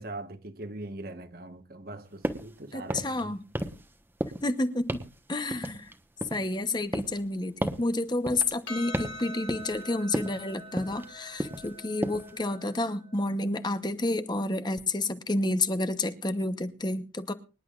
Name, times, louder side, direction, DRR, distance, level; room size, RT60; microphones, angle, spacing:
voice 1, 0.0-3.4, right 2 dB, 55° right, 1.4 m, -41 dB
sound 1, 2.2-2.5 2.8-3.2 3.5-3.9 4.2-4.5 4.9-5.2 5.5-6.5 6.9-7.2 7.6-7.9 8.3-8.5 8.9-9.2 9.5-9.8 10.1-10.4 10.8-11.1 11.4-11.7 12.0-12.3, right 1 dB, 10° right, 1.1 m, -33 dB
voice 2, 2.7-3.4 4.4-5.0 5.3-5.9 6.3-17.3, left 2 dB, 25° left, 0.9 m, -30 dB
Percussion, 8.7-13.3, left 2 dB, 80° left, 3.6 m, -44 dB
25.0 x 11.0 x 2.5 m
head